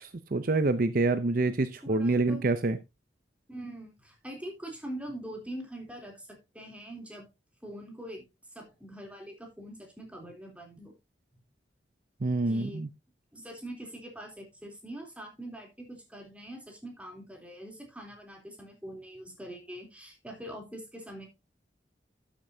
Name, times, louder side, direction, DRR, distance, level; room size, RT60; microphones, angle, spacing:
voice 1, 0.0-2.8 12.2-12.9, right 3 dB, 50° right, 0.6 m, -27 dB
voice 2, 1.8-2.5 3.5-7.3 7.6-11.0 12.5-12.9 13.3-21.3, right 1 dB, 10° right, 3.4 m, -43 dB
12.0 x 8.9 x 2.7 m
head